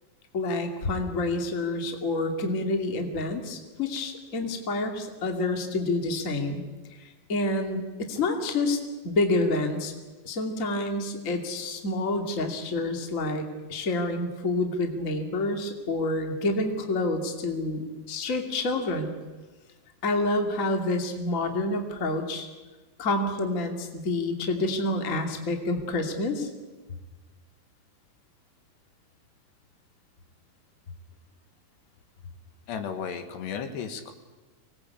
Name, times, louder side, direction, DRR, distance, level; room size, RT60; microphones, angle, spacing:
voice 1, 0.3-6.6 7.0-9.9 10.2-19.1 20.0-22.5 23.0-26.5, left 2 dB, 25° left, 4 dB, 2.0 m, -28 dB
voice 2, 32.7-34.1, left 7 dB, 75° left, 7 dB, 3.7 m, -34 dB
24.5 x 20.5 x 8.5 m, 1.2 s
omnidirectional pair, 5.1 m